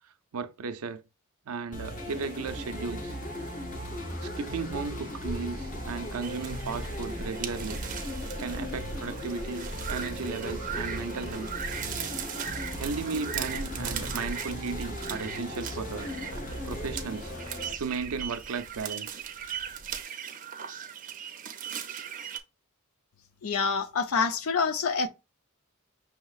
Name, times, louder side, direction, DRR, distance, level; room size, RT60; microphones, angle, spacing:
voice 1, 0.3-1.0 1.5-3.2 4.2-7.8 8.4-11.5 12.8-16.1 16.6-17.3 17.8-19.2, right 5 dB, 85° right, 0.5 m, -35 dB
sound 1, 1.7-17.7, left 1 dB, 40° left, 1.0 m, -38 dB
Camera, 5.3-20.0, equal, 10° left, 0.4 m, -43 dB
sound 2, 6.2-22.4, right 8 dB, 40° right, 0.5 m, -39 dB
voice 2, 23.4-25.1, left 5 dB, 75° left, 0.6 m, -27 dB
5.7 x 2.9 x 2.3 m
head